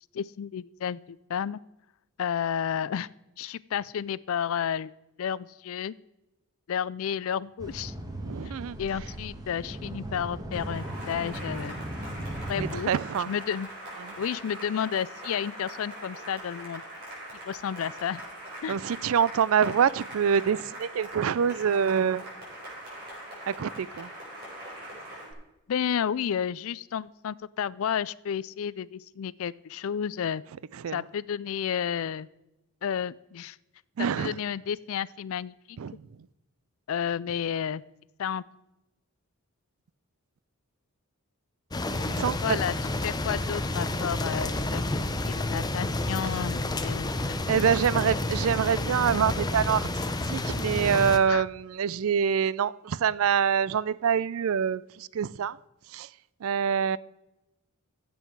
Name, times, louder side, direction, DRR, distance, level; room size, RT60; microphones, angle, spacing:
voice 1, 0.1-1.6 2.2-3.1 3.4-4.9 5.2-5.9 6.7-7.9 8.8-11.8 12.5-12.9 13.2-13.7 14.2-16.8 17.5-18.2 18.6-18.8 25.7-30.4 30.9-32.3 32.8-33.6 34.0-35.8 36.9-37.8 38.2-38.4 42.4-42.7 43.0-44.8 45.3-47.1 47.5-47.6 51.3-51.4, left 8 dB, 65° left, 0.4 m, -31 dB
sound 1, 7.6-12.7, right 1 dB, 15° right, 1.4 m, -37 dB
voice 2, 8.2-8.8 12.6-13.3 14.0-14.1 18.7-22.2 23.5-24.1 30.8-31.0 34.0-34.3 35.8-35.9 42.1-42.6 47.5-49.9 50.3-55.6 55.9-56.1 56.4-57.0, right 7 dB, 65° right, 0.4 m, -25 dB
Cheering / Applause, 10.5-25.3, right 1 dB, 45° right, 5.0 m, -42 dB
sound 2, 41.7-51.2, left 2 dB, 20° left, 0.7 m, -30 dB
15.5 x 7.8 x 4.6 m
head